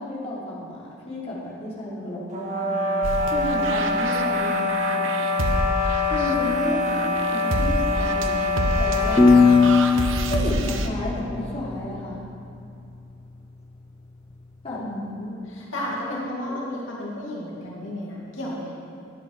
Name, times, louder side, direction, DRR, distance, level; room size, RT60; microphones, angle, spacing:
voice 1, 0.0-5.1 6.0-8.4 8.8-9.2 10.3-12.2 14.6-14.8 15.8-16.6, left 1 dB, 30° left, -8 dB, 3.3 m, -32 dB
sound 1, 2.3-9.8, left 3 dB, 40° right, 1.9 m, -24 dB
sound 2, 3.0-10.9, right 2 dB, 85° right, 1.0 m, -28 dB
sound 3, 9.2-12.1, left 4 dB, 15° left, 0.8 m, -19 dB
voice 2, 14.8-18.7, left 1 dB, 80° left, -5 dB, 2.5 m, -33 dB
12.0 x 10.5 x 6.1 m, 2.6 s
head